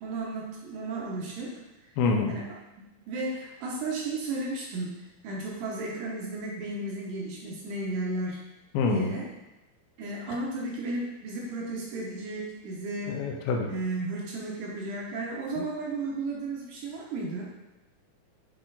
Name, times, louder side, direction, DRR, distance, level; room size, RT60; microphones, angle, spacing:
voice 1, 0.0-1.5 2.3-2.5 3.1-4.9 5.2-8.4 8.9-9.3 10.0-13.2 13.7-17.5, right 2 dB, 70° right, -2 dB, 2.3 m, -34 dB
voice 2, 2.0-2.4 8.7-9.1 10.3-10.4 13.1-13.7 15.6-15.7, left 4 dB, 80° left, 2 dB, 2.4 m, -27 dB
8.1 x 4.3 x 3.8 m, 0.98 s
omnidirectional pair, 4.5 m